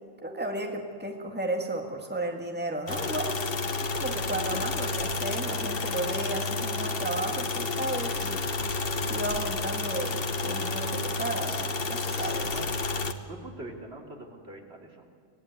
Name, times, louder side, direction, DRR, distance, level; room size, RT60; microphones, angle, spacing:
voice 1, 0.2-3.4 3.9-8.5 9.1-12.6, right 2 dB, 10° right, 3 dB, 1.9 m, -34 dB
sound 1, 2.9-13.1, left 3 dB, 60° left, 1.4 m, -30 dB
voice 2, 12.3-12.7 13.0-15.0, right 1 dB, 65° right, 1 dB, 3.2 m, -43 dB
25.0 x 18.5 x 9.2 m, 2.2 s
omnidirectional pair, 1.1 m